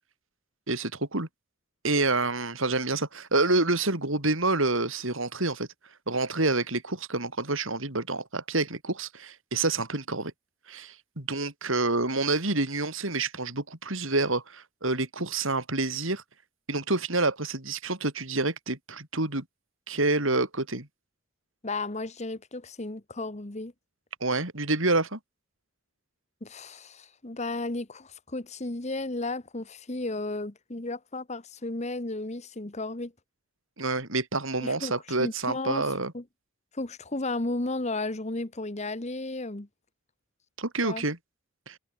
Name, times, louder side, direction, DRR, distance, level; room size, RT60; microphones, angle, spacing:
voice 1, 0.7-1.3 1.8-5.7 6.1-10.3 10.7-16.2 16.7-19.4 19.9-20.9 24.2-25.2 33.8-36.1 40.6-41.2 41.7-41.8, right 2 dB, 70° right, 4.5 m, -28 dB
voice 2, 21.6-23.7 26.4-33.1 34.6-34.9 35.2-35.9 36.1-36.2 36.7-39.7 40.8-41.0, left 2 dB, 35° left, 1.3 m, -34 dB
head